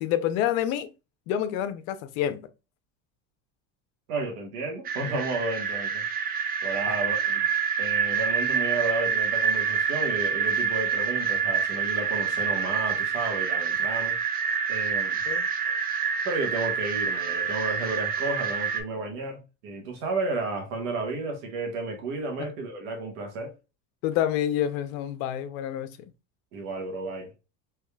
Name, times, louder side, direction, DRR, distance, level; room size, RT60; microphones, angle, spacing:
voice 1, 0.0-0.9 1.3-2.5 6.9-7.0 15.3-15.5 22.4-22.5 24.0-26.0, left 11 dB, 75° left, 0.6 m, -28 dB
voice 2, 4.1-6.0 6.6-7.5 7.8-14.2 14.7-15.2 15.6-15.7 16.2-23.5 26.5-27.3, right 2 dB, 85° right, 1.5 m, -32 dB
sound 1, 4.8-18.8, right 6 dB, 25° right, 0.3 m, -27 dB
3.6 x 3.1 x 2.2 m
supercardioid pair, 120°, 41 cm